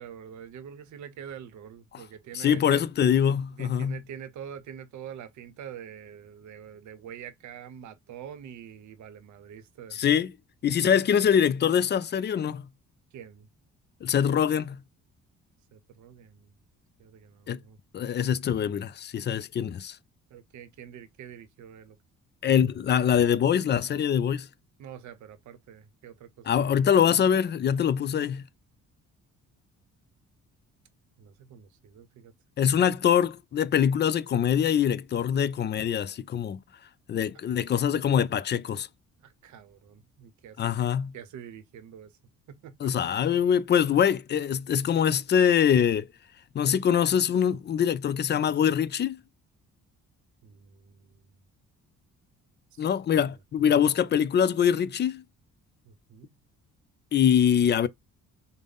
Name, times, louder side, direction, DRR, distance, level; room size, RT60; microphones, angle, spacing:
voice 1, 0.0-2.8 3.6-10.0 13.1-13.5 15.7-16.5 17.0-17.8 20.3-22.0 24.8-27.1 31.2-32.3 39.2-40.7 41.1-42.1 42.5-42.9 50.4-51.4 52.7-52.9 53.2-53.3 55.9-56.3, right 9 dB, 70° right, 0.7 m, -45 dB
voice 2, 2.3-4.0 9.9-10.3 10.6-12.6 14.0-14.8 17.5-17.6 17.9-20.0 22.4-24.5 26.5-28.4 32.6-36.6 37.1-38.9 40.6-41.1 42.8-46.1 46.5-49.2 52.8-55.2 57.1-57.9, left 8 dB, 35° left, 0.4 m, -24 dB
3.8 x 2.0 x 3.5 m
cardioid pair, 90°, 30 cm